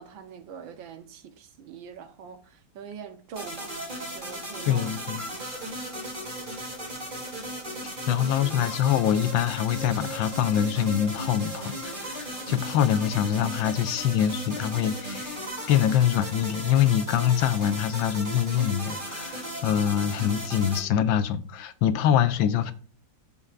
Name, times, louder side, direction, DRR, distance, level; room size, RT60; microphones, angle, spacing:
voice 1, 0.0-3.8 4.1-4.9 5.2-5.4 8.1-8.4, right 6 dB, 75° right, 1.7 m, -43 dB
sound 1, 3.3-20.8, right 1 dB, 25° right, 3.0 m, -36 dB
voice 2, 4.6-5.2 8.1-22.7, left 10 dB, 85° left, 1.4 m, -24 dB
15.0 x 5.6 x 2.4 m
omnidirectional pair, 2.1 m